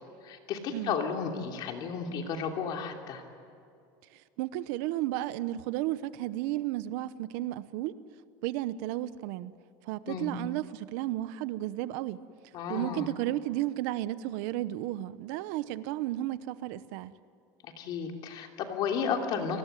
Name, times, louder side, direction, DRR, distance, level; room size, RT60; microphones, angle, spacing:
voice 1, 0.2-3.2 10.1-10.4 12.5-13.1 17.6-19.6, left 6 dB, 45° left, 3 dB, 3.1 m, -33 dB
voice 2, 4.1-7.9 8.4-9.5 9.9-12.2 12.7-17.1, right 15 dB, 70° right, 15 dB, 0.9 m, -33 dB
29.5 x 19.5 x 9.2 m, 2.4 s
cardioid pair, 165°, 10 cm